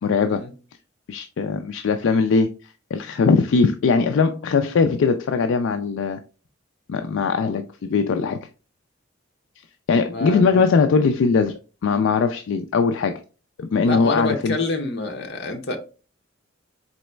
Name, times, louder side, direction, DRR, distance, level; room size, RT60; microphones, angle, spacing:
voice 1, 0.0-0.4 1.1-2.5 2.9-6.2 6.9-8.4 9.9-13.2 13.6-14.6, left 4 dB, 70° left, 0.3 m, -20 dB
voice 2, 10.1-10.6 13.9-15.8, left 2 dB, 50° left, 0.7 m, -27 dB
4.0 x 3.1 x 3.2 m
head